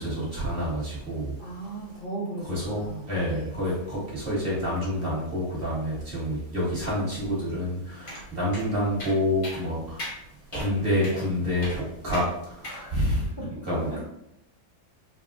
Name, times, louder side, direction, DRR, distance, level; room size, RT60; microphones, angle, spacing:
voice 1, 0.0-1.4 2.5-2.8 3.1-10.0 10.5-12.2 12.5-13.3 13.6-14.0, equal, 40° right, -7 dB, 1.1 m, -28 dB
voice 2, 1.4-3.6 12.6-14.0, right 2 dB, 80° left, -8 dB, 0.4 m, -37 dB
sound 1, 8.1-8.2 8.5-8.6 9.0-9.2 9.4-9.6 10.0-10.2 10.5-10.7 11.0-11.2 11.6-11.8 12.1-12.3 12.6-12.8, left 1 dB, 40° left, 0.8 m, -37 dB
3.7 x 2.0 x 2.5 m, 0.80 s
omnidirectional pair, 1.9 m